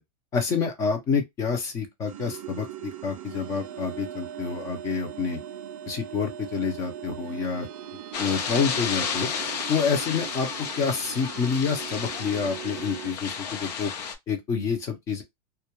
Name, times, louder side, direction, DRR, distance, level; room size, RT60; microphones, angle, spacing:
voice 1, 0.3-5.4 5.9-7.7 8.2-9.3 9.7-10.5 10.7-13.9 14.3-15.2, left 5 dB, 15° left, 0.4 m, -28 dB
sound 1, 2.1-13.1, right 11 dB, 60° right, 0.4 m, -40 dB
sound 2, 8.1-14.1, left 7 dB, 80° left, 0.7 m, -32 dB
2.2 x 2.1 x 2.8 m
supercardioid pair, 175°, 20 cm